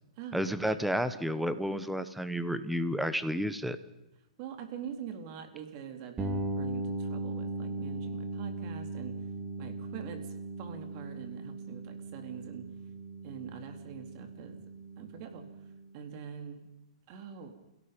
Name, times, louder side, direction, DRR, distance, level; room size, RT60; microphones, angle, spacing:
voice 1, 0.3-3.8, equal, ahead, 12 dB, 1.1 m, -31 dB
voice 2, 4.4-9.1 9.6-10.2 10.6-12.6 13.2-14.6 15.0-15.5 15.9-16.7 17.1-17.5, right 7 dB, 40° right, 5 dB, 3.5 m, -44 dB
sound 1, 6.2-15.9, right 2 dB, 15° right, 3.5 m, -38 dB
29.5 x 17.0 x 5.3 m, 0.95 s
hypercardioid pair, 145°, 3 cm